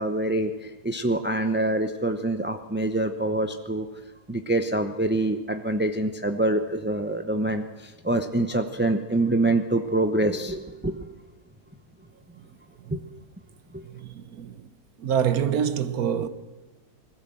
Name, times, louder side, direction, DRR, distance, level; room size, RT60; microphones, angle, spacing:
voice 1, 0.0-3.9 4.3-11.1 12.9-13.0 13.7-13.9, right 2 dB, 10° right, 0.5 m, -25 dB
voice 2, 13.9-14.7 15.0-16.3, right 8 dB, 70° right, 1.3 m, -26 dB
21.0 x 16.0 x 7.8 m
omnidirectional pair, 1.7 m